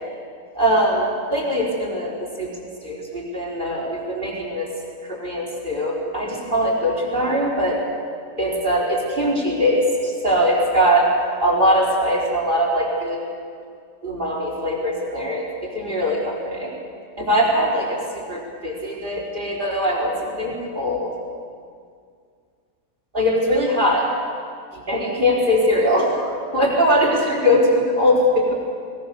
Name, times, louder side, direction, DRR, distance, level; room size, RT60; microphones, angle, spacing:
voice 1, 0.5-2.5 2.8-4.7 5.0-7.8 8.4-11.1 11.4-13.2 14.0-16.7 17.2-18.0 18.3-21.1 23.1-24.1 24.7-28.5, equal, 35° right, -2 dB, 4.7 m, -21 dB
21.5 x 20.5 x 7.0 m, 2.2 s
omnidirectional pair, 1.5 m